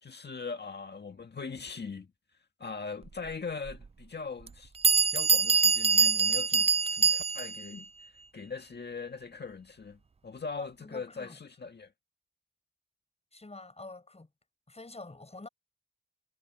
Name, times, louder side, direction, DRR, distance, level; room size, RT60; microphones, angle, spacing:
voice 1, 0.0-2.1 2.6-7.8 8.3-11.9, left 4 dB, 60° left, 1.8 m, -41 dB
Bell, 3.7-3.8 4.5-4.6 4.8-7.6, right 5 dB, 30° right, 0.5 m, -24 dB
voice 2, 10.6-11.4 13.3-14.3 14.7-15.5, left 2 dB, 30° left, 5.7 m, -47 dB
cardioid pair, 60°, 20 cm